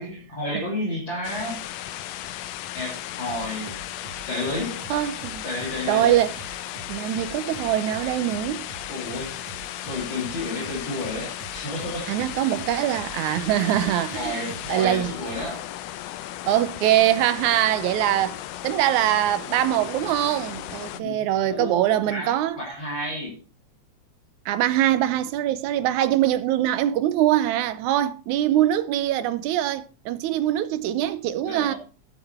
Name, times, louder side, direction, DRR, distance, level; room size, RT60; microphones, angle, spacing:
voice 1, 0.0-1.6 2.7-3.8 4.3-4.8 5.4-6.2 8.9-9.3 9.8-12.2 14.1-15.6 20.9-23.3 31.4-31.8, left 1 dB, 40° left, 3.3 m, -31 dB
sound 1, 1.2-21.0, left 13 dB, 75° left, 1.6 m, -36 dB
sound 2, 3.3-15.7, right 5 dB, 65° right, 1.9 m, -45 dB
voice 2, 4.9-5.4 5.9-6.4 6.9-8.7 12.1-14.4 14.7-15.1 16.4-18.4 18.6-22.6 24.5-31.7, right 12 dB, 85° right, 2.1 m, -23 dB
12.0 x 7.3 x 4.3 m
omnidirectional pair, 3.4 m